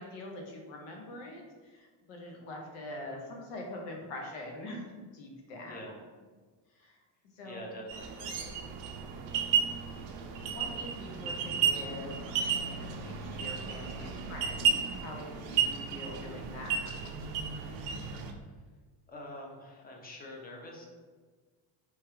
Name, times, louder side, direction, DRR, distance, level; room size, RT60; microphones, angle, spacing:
voice 1, 0.0-5.8 6.7-7.0 7.4-7.6 10.4-12.2 12.5-16.9, left 1 dB, 85° left, 0 dB, 0.8 m, -44 dB
voice 2, 7.4-8.5 19.1-20.9, left 1 dB, 20° left, 0 dB, 0.5 m, -45 dB
sound 1, 7.9-18.3, right 6 dB, 60° right, 0.5 m, -33 dB
3.0 x 2.3 x 3.1 m, 1.4 s
cardioid pair, 120°, 48 cm